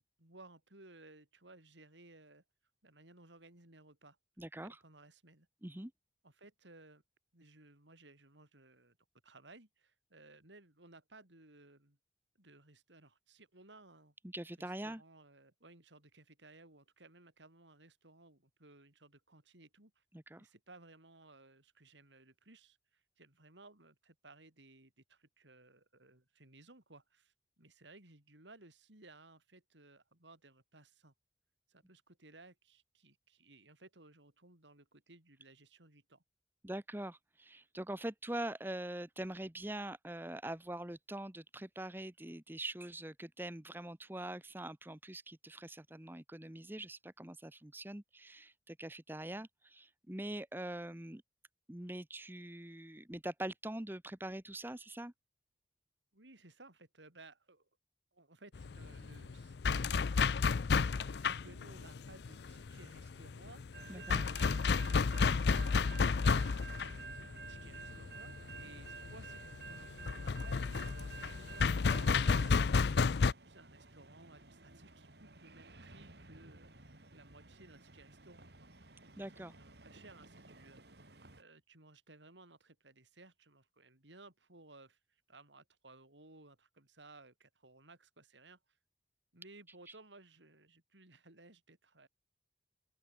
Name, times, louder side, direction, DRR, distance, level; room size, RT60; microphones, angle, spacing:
voice 1, 0.2-2.4 2.8-4.2 4.6-5.5 6.2-7.0 7.3-9.0 9.2-12.0 12.4-14.1 14.6-20.0 20.4-31.1 31.7-36.2 56.1-57.7 58.1-65.9 66.2-73.1 73.5-78.7 79.3-80.8 81.3-88.6 89.3-92.1, right 2 dB, 85° right, 5.2 m, -59 dB
voice 2, 4.4-4.8 5.6-5.9 14.2-15.0 20.1-20.5 36.6-51.2 51.7-55.1 63.9-64.2 79.2-79.5, right 1 dB, 10° right, 1.0 m, -43 dB
sound 1, 58.6-73.3, left 5 dB, 70° left, 0.5 m, -32 dB
sound 2, 63.7-81.4, right 4 dB, 65° right, 4.3 m, -53 dB
open air
head